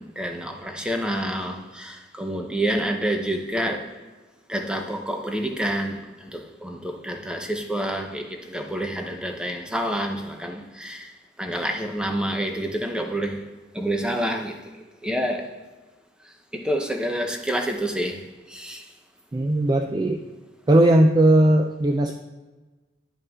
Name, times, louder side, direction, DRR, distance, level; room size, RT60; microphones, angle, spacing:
voice 1, 0.0-3.9 4.5-11.1 11.4-13.4 13.7-14.6 15.0-15.5 16.5-18.9, right 1 dB, 5° right, 3 dB, 0.8 m, -28 dB
voice 2, 19.3-20.3 20.7-22.1, right 1 dB, 20° right, 4 dB, 0.4 m, -18 dB
11.0 x 5.5 x 3.6 m, 1.3 s
head